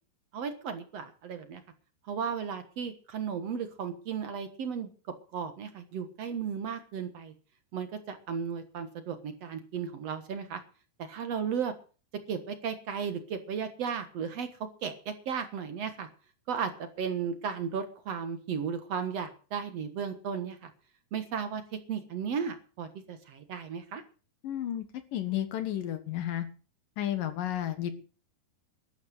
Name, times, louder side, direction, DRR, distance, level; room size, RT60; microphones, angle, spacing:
voice 1, 0.3-1.6 2.1-4.9 5.3-7.3 7.7-10.6 11.0-11.7 12.3-14.5 14.8-16.1 16.5-20.7 21.1-24.0, right 7 dB, 60° right, 9 dB, 1.7 m, -35 dB
voice 2, 24.4-24.9 25.1-26.5 27.0-27.9, left 11 dB, 65° left, 10 dB, 2.7 m, -32 dB
13.0 x 11.5 x 6.4 m, 0.38 s
omnidirectional pair, 4.9 m